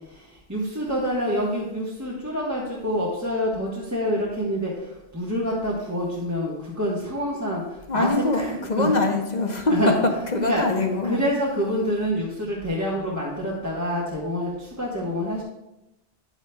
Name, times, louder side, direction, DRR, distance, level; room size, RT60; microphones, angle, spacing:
voice 1, 0.1-8.9 9.7-10.0 10.4-10.6 11.0-15.4, equal, 15° right, -6 dB, 1.2 m, -27 dB
voice 2, 7.9-9.9 10.3-11.2, left 2 dB, 45° left, 3 dB, 0.9 m, -23 dB
10.0 x 9.1 x 2.3 m, 0.93 s
omnidirectional pair, 1.1 m